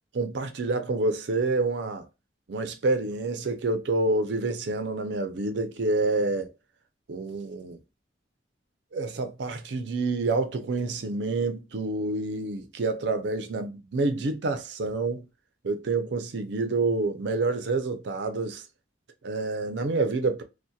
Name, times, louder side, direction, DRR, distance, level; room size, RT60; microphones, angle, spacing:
voice 1, 0.1-2.0 2.5-6.5 7.1-7.8 8.9-15.3 15.6-18.6 19.2-20.4, right 3 dB, 80° right, 0.5 m, -28 dB
2.7 x 2.1 x 2.2 m
head